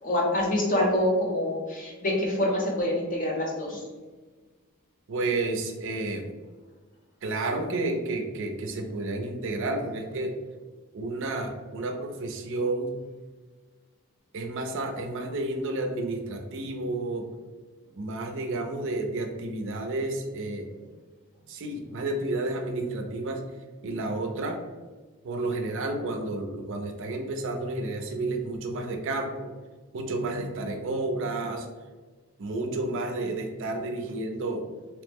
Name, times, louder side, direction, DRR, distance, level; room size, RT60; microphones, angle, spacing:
voice 1, 0.0-3.8, left 1 dB, 40° left, -2 dB, 0.7 m, -26 dB
voice 2, 5.1-6.3 7.2-10.4 10.9-13.0 14.3-17.3 18.0-20.7 21.5-23.4 23.8-24.6 25.2-29.5 29.9-31.7 32.4-34.6, right 2 dB, 60° right, 4 dB, 0.4 m, -31 dB
2.9 x 2.1 x 3.3 m, 1.3 s
head